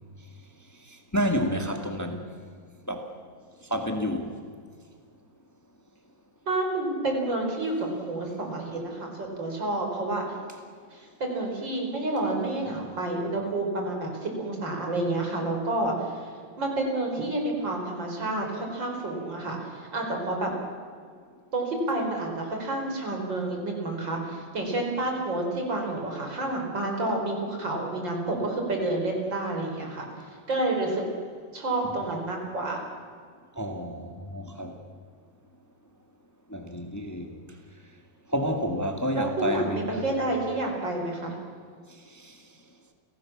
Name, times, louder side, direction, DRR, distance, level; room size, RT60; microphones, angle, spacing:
voice 1, 0.9-2.3 2.9-3.1 3.7-4.4 31.8-32.0 33.6-34.8 36.5-37.4 38.3-40.1 42.1-42.3, equal, 10° left, 4 dB, 1.9 m, -30 dB
voice 2, 6.5-10.4 10.9-16.3 16.6-20.5 21.5-31.0 31.5-32.8 39.1-41.3, right 2 dB, 75° right, 1 dB, 5.7 m, -29 dB
30.0 x 18.0 x 7.4 m, 2.1 s
omnidirectional pair, 2.0 m